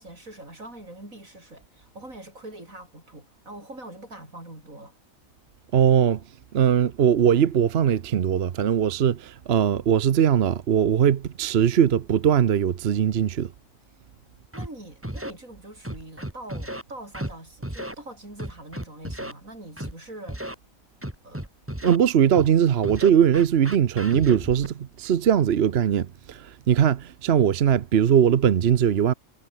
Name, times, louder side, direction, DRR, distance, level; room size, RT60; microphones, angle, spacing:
voice 1, 0.0-4.9 14.5-20.4 21.2-21.5, right 1 dB, 85° right, 8.6 m, -43 dB
voice 2, 5.7-6.2 6.5-13.5 21.8-29.1, right 9 dB, 55° right, 1.0 m, -20 dB
Scratching (performance technique), 14.5-14.7 15.0-15.3 15.8-16.8 17.1-17.3 17.6-17.9 18.4-19.3 19.8-19.9 20.3-20.5 21.0-22.0 22.3-22.5 22.8-24.7, right 1 dB, 10° right, 3.0 m, -34 dB
omnidirectional pair, 1.4 m